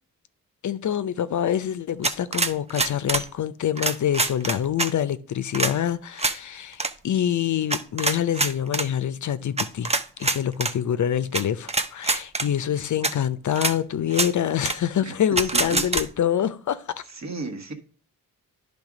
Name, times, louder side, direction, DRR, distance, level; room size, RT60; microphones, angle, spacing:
voice 1, 0.6-9.9 10.2-16.8, left 10 dB, 55° left, 0.6 m, -26 dB
sound 1, 2.0-3.3 3.8-4.9 5.5-5.7 6.2-6.4 6.7-6.9 7.7-8.9 9.6-10.7 11.3-11.4 11.7-12.5 13.0-13.1 13.6-13.7 14.1-14.3 14.6-14.8 15.4-16.0, right 3 dB, 20° right, 0.6 m, -24 dB
voice 2, 15.0-15.9 17.1-17.7, right 3 dB, 50° right, 1.5 m, -34 dB
10.0 x 3.5 x 5.0 m
cardioid pair, 65°, 35 cm